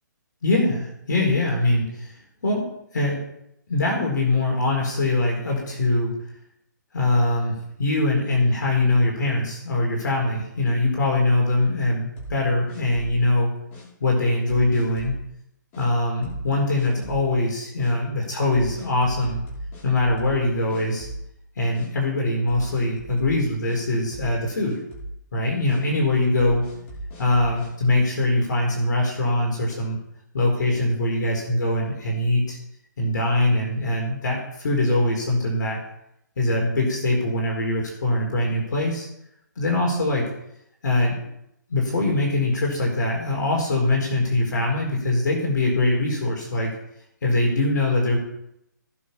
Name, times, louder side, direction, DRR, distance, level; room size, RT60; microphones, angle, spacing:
voice 1, 0.4-2.1 2.4-2.6 2.9-3.2 3.7-6.1 6.9-13.5 14.0-15.2 15.8-19.4 19.8-21.1 21.6-24.8 25.3-26.6 27.2-30.0 30.3-32.6 33.0-35.8 36.4-39.1 39.6-40.2 40.8-41.3 41.7-46.7 47.2-48.2, left 2 dB, 65° left, 0 dB, 4.5 m, -22 dB
sound 1, 12.2-13.3 13.7-13.9 14.5-15.2 15.7-15.9 16.2-16.5 16.7-17.3 17.8-17.9 18.5-20.4 20.7-21.4 21.7-21.9 22.5-23.8 24.1-24.4 24.6-25.2 25.7-25.8 26.4-27.7, right 1 dB, 30° left, 5.6 m, -37 dB
18.5 x 6.6 x 5.6 m, 0.79 s
hypercardioid pair, 140°, 10 cm